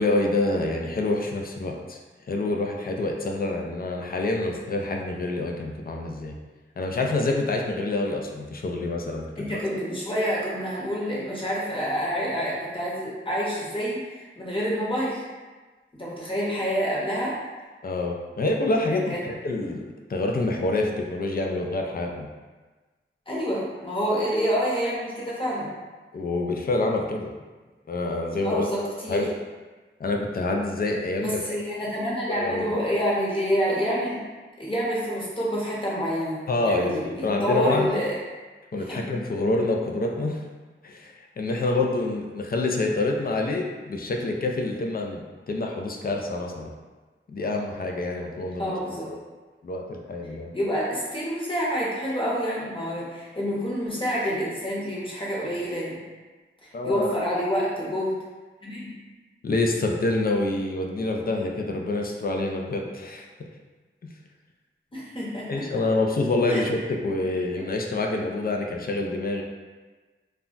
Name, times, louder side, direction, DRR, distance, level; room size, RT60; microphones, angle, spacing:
voice 1, 0.0-2.0 2.3-6.4 6.8-9.6 17.8-22.3 26.1-27.3 27.9-28.7 29.1-29.3 30.0-31.4 32.3-32.8 36.5-37.9 38.7-40.4 40.8-46.7 47.3-48.7 49.1-49.2 49.6-50.6 56.7-57.1 59.4-63.3 65.5-69.4, left 2 dB, 45° left, 1 dB, 0.4 m, -27 dB
voice 2, 9.4-15.2 15.9-17.3 18.9-19.3 23.3-25.7 28.4-29.2 31.2-34.2 34.6-38.2 38.8-39.1 48.6-49.1 50.5-56.0 56.6-58.1 58.6-58.9 64.9-65.7 66.5-66.6 67.6-67.7, equal, 25° left, -6 dB, 0.9 m, -28 dB
2.3 x 2.1 x 3.8 m, 1.3 s
wide cardioid pair, 70°, 21 cm